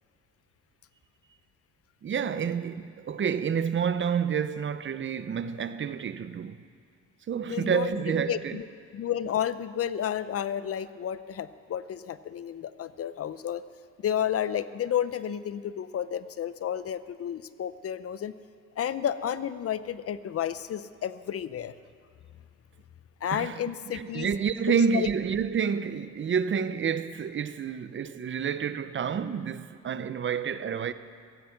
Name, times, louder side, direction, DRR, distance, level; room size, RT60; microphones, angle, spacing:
voice 1, 2.0-6.6 7.3-8.6 23.3-23.6 23.9-30.9, right 7 dB, 40° right, 0.7 m, -29 dB
voice 2, 7.5-8.7 8.9-13.6 14.0-18.3 18.8-21.7 23.2-24.3 24.9-25.1, left 9 dB, 50° left, 0.6 m, -31 dB
15.0 x 15.0 x 5.9 m
cardioid pair, 90°, 30 cm